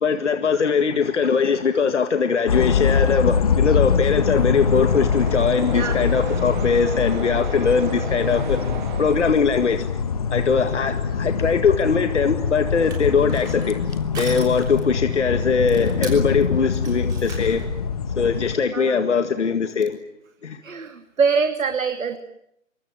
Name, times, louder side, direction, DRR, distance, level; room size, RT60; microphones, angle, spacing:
voice 1, 0.0-8.6 9.0-9.8 10.3-13.7 14.2-17.7 18.2-20.0 20.4-20.6, left 5 dB, 60° left, 8 dB, 2.0 m, -21 dB
sound 1, 2.5-18.5, left 6 dB, 30° left, 1.2 m, -24 dB
sound 2, 3.2-10.2, right 7 dB, 35° right, 2.4 m, -37 dB
voice 2, 5.7-6.1 18.7-19.0 20.6-22.2, right 5 dB, 80° right, 7 dB, 2.8 m, -24 dB
Crushing, 12.6-17.8, right 4 dB, 10° right, 3.3 m, -38 dB
27.0 x 24.0 x 9.3 m, 0.75 s
hypercardioid pair, 170°, 39 cm